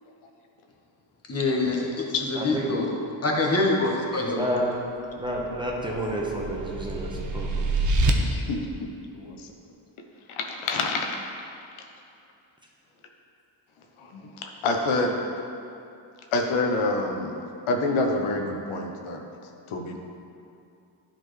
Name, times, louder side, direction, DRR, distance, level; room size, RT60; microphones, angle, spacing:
voice 1, 1.3-2.1 2.4-2.9 3.2-4.4, left 2 dB, 30° left, -1 dB, 1.2 m, -25 dB
voice 2, 2.3-2.8 4.2-4.8 5.2-7.7, right 1 dB, 10° right, -3 dB, 0.9 m, -30 dB
sound 1, 5.3-8.1, right 2 dB, 40° right, 0.7 m, -27 dB
voice 3, 8.2-9.5 10.3-11.1 14.0-15.2 16.3-17.3 17.7-19.2 19.7-20.0, left 2 dB, 85° left, 2 dB, 0.8 m, -27 dB
10.5 x 4.3 x 3.2 m, 2.6 s
cardioid pair, 85°, 48 cm